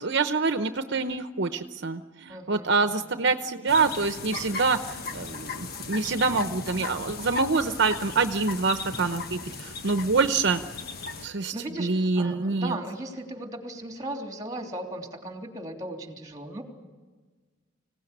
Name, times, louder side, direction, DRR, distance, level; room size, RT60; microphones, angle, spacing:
voice 1, 0.0-10.6 11.2-11.5 11.8-12.8, right 4 dB, 65° right, 8 dB, 0.9 m, -26 dB
voice 2, 2.3-3.0 11.5-16.6, right 1 dB, 20° right, 3 dB, 3.2 m, -37 dB
sound 1, 3.7-11.3, left 4 dB, 50° left, 1.4 m, -37 dB
25.0 x 17.5 x 10.0 m, 1.4 s
head